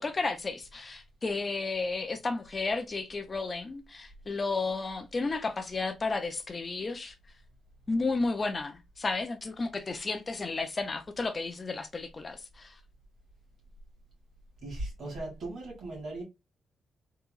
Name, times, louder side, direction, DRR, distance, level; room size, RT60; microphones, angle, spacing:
voice 1, 0.0-7.1 7.9-12.8, left 3 dB, 25° left, 0.3 m, -32 dB
voice 2, 14.6-16.2, right 2 dB, 50° right, 1.9 m, -38 dB
3.6 x 2.8 x 2.2 m
wide cardioid pair, 175°, 0 cm